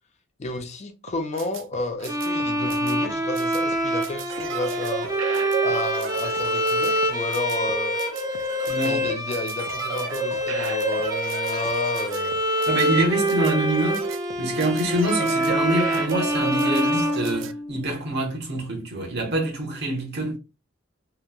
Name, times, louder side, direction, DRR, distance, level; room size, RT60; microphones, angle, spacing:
voice 1, 0.4-5.1 5.6-8.0 8.8-12.4, left 2 dB, 35° left, 0.4 m, -31 dB
sound 1, 1.1-17.5, right 8 dB, 80° right, 0.3 m, -34 dB
Bowed string instrument, 2.1-17.9, equal, 20° right, 0.5 m, -26 dB
voice 2, 8.7-9.0 12.7-14.1 14.4-20.4, right 1 dB, 60° right, 0.9 m, -25 dB
2.9 x 2.1 x 2.2 m
head